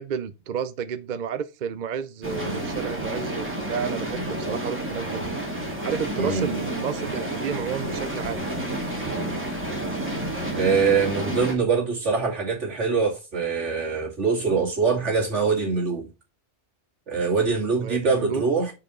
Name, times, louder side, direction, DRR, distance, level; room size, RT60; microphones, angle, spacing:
voice 1, 0.0-5.3 5.8-8.5 17.8-18.4, right 7 dB, 50° right, 0.7 m, -31 dB
sound 1, 2.2-11.5, right 1 dB, 10° right, 2.0 m, -30 dB
voice 2, 6.2-6.5 9.0-9.4 10.6-16.1 17.1-18.7, right 5 dB, 85° right, 2.8 m, -24 dB
4.9 x 4.8 x 6.1 m
omnidirectional pair, 1.2 m